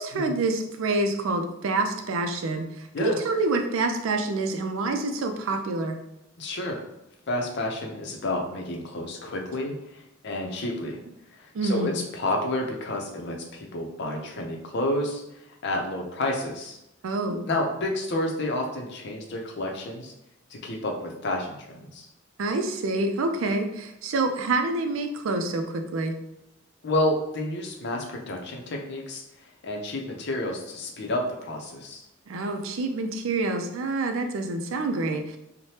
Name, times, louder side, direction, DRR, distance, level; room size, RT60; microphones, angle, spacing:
voice 1, 0.0-6.0 11.5-12.0 17.0-17.4 22.4-26.2 32.3-35.4, right 2 dB, 85° right, 5 dB, 0.4 m, -27 dB
voice 2, 6.4-6.8 7.3-11.0 11.3-16.8 17.5-20.1 20.5-22.1 26.8-32.0, left 1 dB, 60° left, 1 dB, 0.5 m, -30 dB
3.2 x 2.1 x 2.8 m, 0.85 s
head